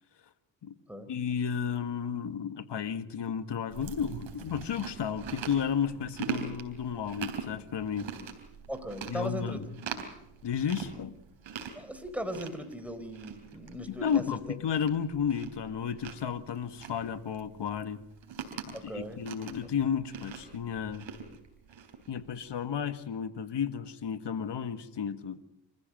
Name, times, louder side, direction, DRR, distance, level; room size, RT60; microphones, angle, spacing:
voice 1, 1.1-8.1 9.1-9.6 10.4-11.1 13.9-18.0 18.7-21.1 22.1-25.4, left 7 dB, 60° left, 11 dB, 1.8 m, -33 dB
Chewing mastication, 3.7-22.6, right 6 dB, 75° right, 3.6 m, -43 dB
voice 2, 8.7-9.6 11.7-14.2 18.7-19.2, equal, 5° right, 8 dB, 4.3 m, -38 dB
27.5 x 15.0 x 7.8 m, 0.80 s
cardioid pair, 60°, 47 cm